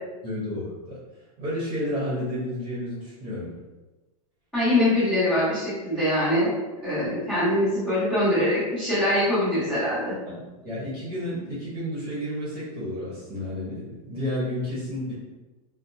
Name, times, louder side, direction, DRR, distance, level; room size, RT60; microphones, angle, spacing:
voice 1, 0.2-1.0 1.4-3.5 10.3-15.1, left 1 dB, 35° right, -8 dB, 1.0 m, -31 dB
voice 2, 4.5-6.5 6.8-10.1, left 1 dB, 5° left, -16 dB, 1.1 m, -23 dB
2.8 x 2.1 x 2.6 m, 1.2 s
supercardioid pair, 180°, 20 cm